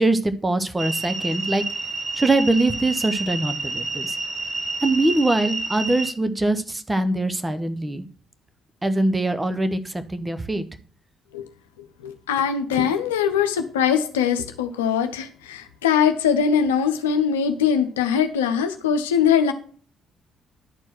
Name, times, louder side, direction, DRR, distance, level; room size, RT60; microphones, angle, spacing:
voice 1, 0.0-1.6 2.1-4.2 4.8-8.0 8.8-10.6, right 2 dB, 20° right, 10 dB, 1.0 m, -22 dB
sound 1, 0.8-6.1, right 3 dB, 35° right, 1.1 m, -29 dB
voice 2, 12.0-19.5, left 7 dB, 85° left, 7 dB, 0.7 m, -21 dB
10.5 x 4.6 x 5.9 m, 0.43 s
hypercardioid pair, 45°, 0 cm